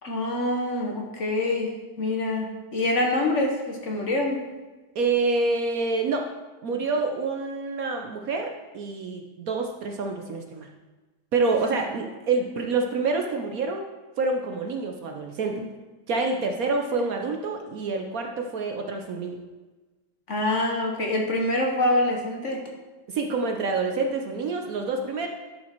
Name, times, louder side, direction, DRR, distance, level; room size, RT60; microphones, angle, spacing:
voice 1, 0.0-4.4 15.5-15.6 20.3-22.6, left 1 dB, 45° left, 1 dB, 1.3 m, -25 dB
voice 2, 4.9-6.3 6.6-10.7 11.3-13.9 14.2-15.6 16.1-19.4 23.1-25.3, right 3 dB, 60° right, 3 dB, 1.1 m, -27 dB
11.0 x 5.4 x 4.5 m, 1.2 s
omnidirectional pair, 1.9 m